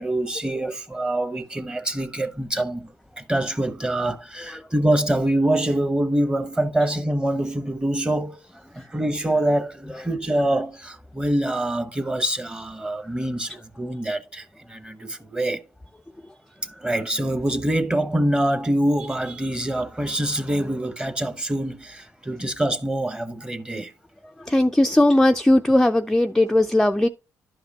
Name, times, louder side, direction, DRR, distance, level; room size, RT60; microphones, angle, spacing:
voice 1, 0.0-8.5 8.7-15.6 16.6-23.9, right 1 dB, 15° right, 0.9 m, -25 dB
voice 2, 24.5-27.1, left 1 dB, 5° left, 0.4 m, -18 dB
11.5 x 4.9 x 2.8 m
supercardioid pair, 70°, 7 cm